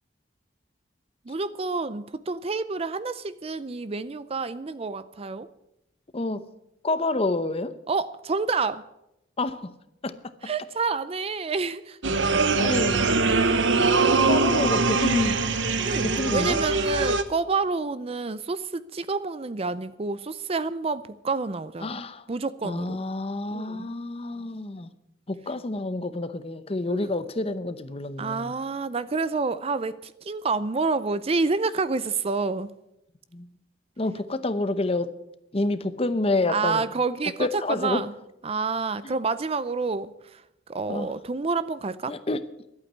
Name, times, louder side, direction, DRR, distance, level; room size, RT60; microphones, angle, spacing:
voice 1, 1.2-5.5 7.9-8.8 10.4-12.0 15.8-22.0 22.3-23.0 23.5-23.9 26.9-27.1 28.2-32.7 36.5-38.1 38.4-42.2, right 4 dB, 30° right, 15 dB, 0.5 m, -28 dB
voice 2, 6.1-6.4 6.8-7.8 9.4-9.7 10.0-10.3 12.6-13.0 14.2-15.4 16.0-16.6 21.8-22.2 22.6-24.9 25.3-28.5 33.3-33.5 34.0-35.1 35.5-36.9 37.4-38.0 39.0-39.1 40.9-41.1 42.1-42.4, left 2 dB, 30° left, 12 dB, 0.8 m, -28 dB
sound 1, 12.0-17.2, right 3 dB, 85° right, 1.0 m, -22 dB
11.5 x 8.6 x 9.4 m, 0.85 s
head